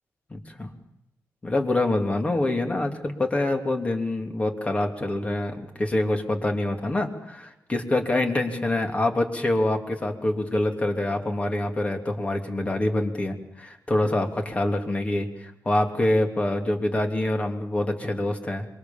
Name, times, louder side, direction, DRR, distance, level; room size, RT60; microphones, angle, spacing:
voice 1, 0.3-0.7 1.4-18.7, left 1 dB, 20° left, 4 dB, 3.1 m, -26 dB
26.5 x 24.0 x 7.3 m, 0.86 s
wide cardioid pair, 130°, 6 cm